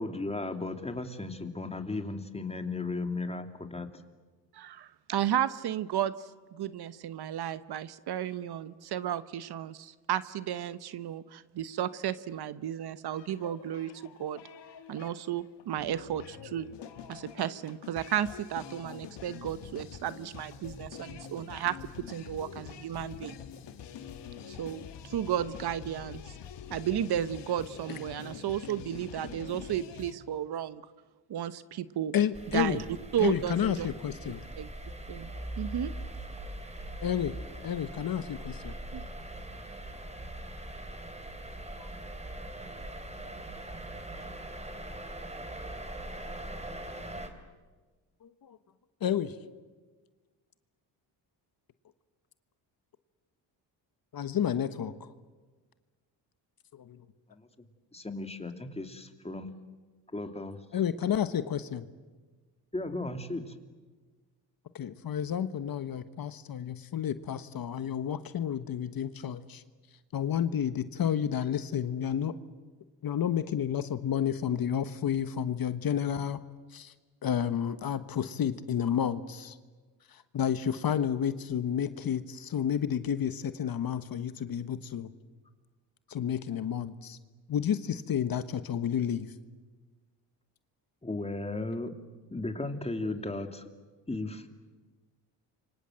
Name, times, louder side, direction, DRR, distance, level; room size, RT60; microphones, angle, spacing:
voice 1, 0.0-3.9 57.3-57.5 57.9-59.5 60.1-60.6 62.7-63.4 91.0-91.9 92.3-93.6 94.1-94.4, left 2 dB, 15° left, 6 dB, 2.7 m, -35 dB
voice 2, 4.5-14.4 14.9-16.7 17.1-21.8 22.1-23.4 24.5-26.3 26.7-30.8 31.3-32.1 32.5-32.8 33.1-33.9 34.6-34.7 35.1-35.3 35.6-35.9 38.9-39.0, right 10 dB, 60° right, 15 dB, 1.1 m, -33 dB
sound 1, 13.1-30.1, left 8 dB, 70° left, 2.2 m, -46 dB
voice 3, 32.1-32.8 33.2-34.4 37.0-37.3 37.6-38.7 41.8-41.9 48.2-48.6 49.0-49.3 54.1-55.1 56.7-57.0 60.7-61.9 64.7-69.6 70.1-72.3 73.0-76.4 76.7-76.9 77.2-79.6 80.1-85.1 86.1-87.2 87.5-89.3, left 9 dB, 50° left, 12 dB, 1.4 m, -31 dB
sound 2, 32.3-47.3, right 1 dB, 15° right, 3.6 m, -41 dB
28.5 x 25.0 x 7.8 m, 1.4 s
cardioid pair, 80°, 44 cm